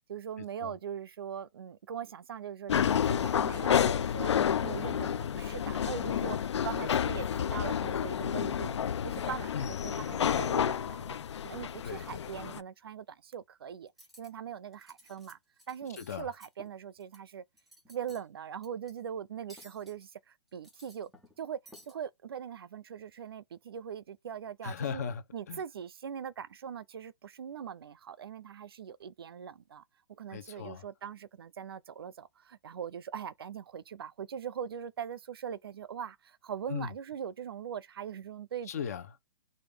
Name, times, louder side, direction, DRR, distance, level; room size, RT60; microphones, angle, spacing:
voice 1, 0.1-8.8 9.0-11.2 11.4-13.9 14.2-15.4 15.7-17.4 17.9-21.1 21.4-21.6 21.9-25.0 25.3-29.8 30.1-38.8, right 8 dB, 60° right, 0.5 m, -41 dB
sound 1, 2.7-12.6, left 8 dB, 80° left, 0.5 m, -30 dB
voice 2, 11.8-12.3 15.9-16.3 24.6-25.6 30.3-30.9 36.7-36.9 38.7-39.2, left 7 dB, 35° left, 0.8 m, -38 dB
Cutlery silverware, 13.9-14.3 14.7-15.3 15.6-17.2 17.5-18.3 18.6-18.9 19.5-20.1 20.5-21.4 21.7-21.9, equal, ahead, 0.3 m, -56 dB
5.1 x 2.6 x 3.4 m
hypercardioid pair, 180°, 14 cm